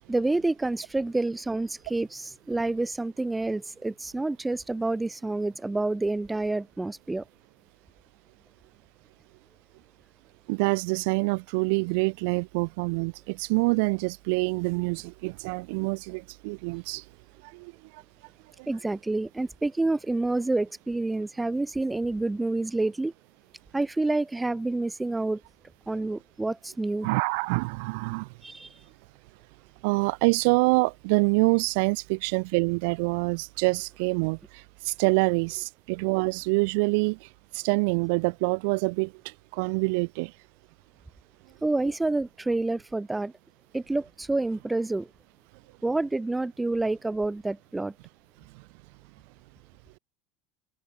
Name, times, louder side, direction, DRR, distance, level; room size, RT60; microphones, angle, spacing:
voice 1, 0.1-7.2 18.7-23.1 23.7-25.4 25.9-27.1 28.4-28.7 41.6-43.3 43.7-45.1 45.8-47.9, right 2 dB, 10° right, 0.5 m, -28 dB
voice 2, 10.5-17.0 17.5-17.7 27.0-28.3 29.8-34.4 34.8-37.3 37.5-40.3, right 31 dB, 75° right, 0.4 m, -26 dB
supercardioid pair, 105°, 0 cm